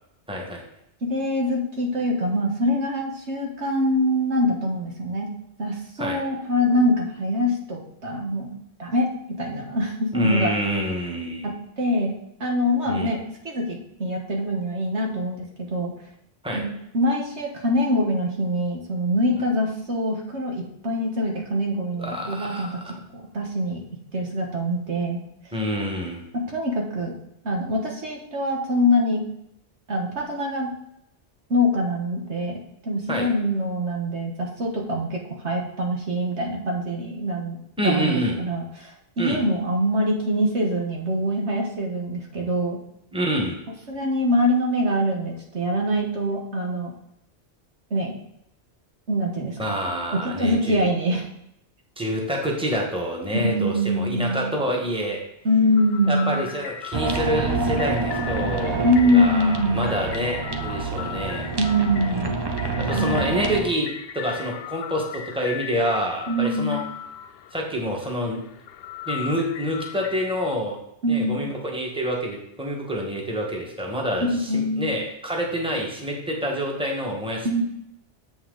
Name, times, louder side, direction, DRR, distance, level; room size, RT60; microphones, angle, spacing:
voice 1, 0.3-0.6 6.0-6.2 10.1-11.5 12.9-13.2 16.4-16.6 22.0-22.9 25.5-26.2 33.1-33.3 37.8-38.3 39.2-39.4 43.1-43.6 49.6-50.8 52.0-55.2 56.1-61.5 62.9-63.9 64.1-66.8 67.5-68.4 69.1-70.8 71.1-77.6, equal, 5° right, -1 dB, 1.4 m, -27 dB
voice 2, 1.0-5.3 5.6-10.5 11.4-15.9 16.5-22.7 23.1-23.8 24.1-25.2 26.3-27.1 27.4-29.2 29.9-30.7 31.5-32.6 32.8-37.6 37.8-42.8 43.9-46.9 47.9-48.2 49.1-49.6 50.2-51.3 53.3-54.6 55.4-56.5 58.8-60.0 61.6-62.4 62.9-63.5 66.3-66.9 71.0-71.4 74.3-74.9 77.4-77.6, equal, 80° right, 1 dB, 1.7 m, -24 dB
sound 1, 55.6-70.6, left 9 dB, 65° left, 0.7 m, -38 dB
sound 2, 56.9-63.6, right 3 dB, 25° right, 0.6 m, -27 dB
7.8 x 5.9 x 3.9 m, 0.77 s
omnidirectional pair, 1.2 m